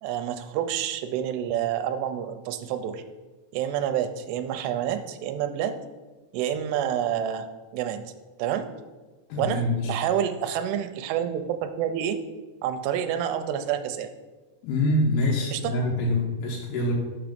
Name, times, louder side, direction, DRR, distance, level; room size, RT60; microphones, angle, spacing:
voice 1, 0.0-3.0 3.5-5.7 6.3-7.5 7.7-8.0 8.4-8.7 9.4-9.6 9.9-12.2 12.6-14.1 15.5-15.6, right 9 dB, 80° right, 7 dB, 2.7 m, -28 dB
voice 2, 9.3-9.9 14.6-16.9, left 1 dB, 75° left, -2 dB, 2.9 m, -25 dB
6.3 x 6.0 x 5.1 m, 1.2 s
omnidirectional pair, 4.9 m